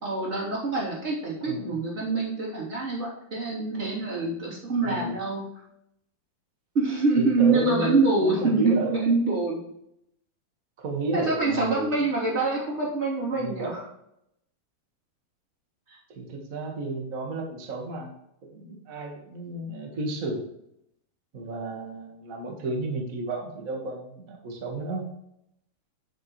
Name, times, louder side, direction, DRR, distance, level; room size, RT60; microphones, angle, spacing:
voice 1, 0.0-5.4 6.7-9.6 11.1-13.8 15.9-16.0, right 3 dB, 20° right, -6 dB, 3.0 m, -25 dB
voice 2, 4.8-5.2 7.2-8.9 10.8-12.0 13.3-13.7 16.1-18.1 18.4-20.5 21.3-25.0, right 2 dB, 40° right, 0 dB, 1.2 m, -32 dB
9.7 x 6.7 x 3.2 m, 0.77 s
omnidirectional pair, 4.0 m